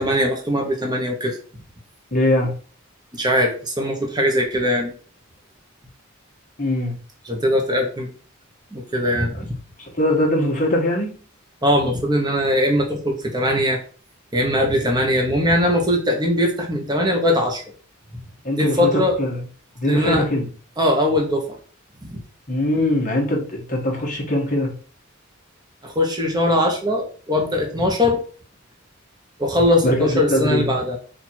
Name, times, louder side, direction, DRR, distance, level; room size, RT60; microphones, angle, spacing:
voice 1, 0.0-1.3 3.1-4.9 7.2-8.1 8.7-9.5 11.6-13.8 14.3-17.6 18.6-19.2 19.8-20.2 20.8-21.6 22.0-22.2 25.8-28.2 29.4-31.0, left 1 dB, 20° right, 1 dB, 0.9 m, -20 dB
voice 2, 2.1-2.5 6.6-7.0 9.8-11.1 18.4-18.9 19.2-19.4 19.8-20.5 22.5-24.7 29.8-30.7, left 1 dB, 40° left, -1 dB, 1.2 m, -21 dB
4.3 x 2.6 x 4.4 m, 0.41 s
head